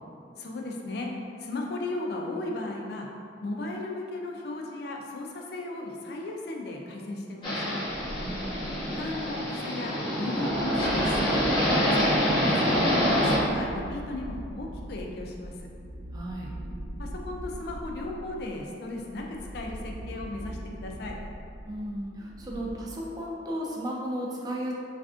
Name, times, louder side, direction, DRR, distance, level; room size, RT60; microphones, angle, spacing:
voice 1, 0.4-1.1 1.4-3.1 3.4-7.8 8.8-11.3 11.9-15.7 17.0-21.2, left 2 dB, 60° left, 0 dB, 0.4 m, -36 dB
sound 1, 7.4-13.4, equal, 30° left, 0.7 m, -26 dB
sound 2, 7.8-9.6 10.2-22.7, right 1 dB, 70° right, 0.6 m, -41 dB
voice 2, 8.2-8.8 16.1-16.5 21.7-24.7, equal, 20° right, -3 dB, 0.3 m, -35 dB
3.3 x 2.5 x 2.4 m, 2.4 s
head